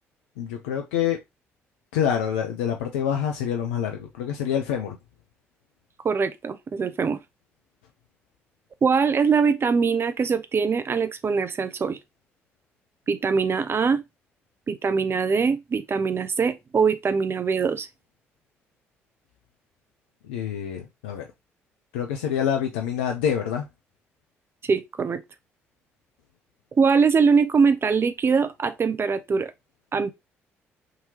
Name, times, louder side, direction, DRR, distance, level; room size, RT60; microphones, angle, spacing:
voice 1, 0.4-1.2 1.9-5.0 20.2-21.3 21.9-23.7, left 8 dB, 80° left, 0.4 m, -26 dB
voice 2, 6.0-7.2 8.8-12.0 13.1-14.0 14.7-17.9 24.6-25.2 26.7-29.5 29.9-30.1, right 5 dB, 40° right, 0.5 m, -22 dB
3.7 x 2.8 x 2.8 m
hypercardioid pair, 45°, 6 cm